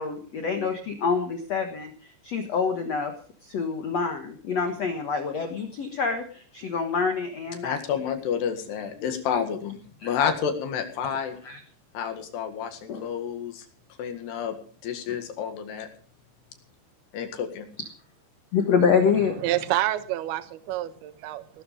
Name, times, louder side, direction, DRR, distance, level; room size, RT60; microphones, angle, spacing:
voice 1, 0.0-1.9 2.2-3.1 3.5-7.8 10.0-10.1 11.4-11.6 12.9-13.0 18.5-19.4, left 5 dB, 85° left, 6 dB, 1.4 m, -26 dB
voice 2, 7.6-11.4 11.9-13.7 14.0-14.6 14.8-15.9 17.1-17.7, left 7 dB, 65° left, 7 dB, 3.7 m, -30 dB
voice 3, 19.4-21.6, right 14 dB, 70° right, 11 dB, 2.8 m, -28 dB
18.0 x 12.5 x 5.2 m, 0.43 s
omnidirectional pair, 5.3 m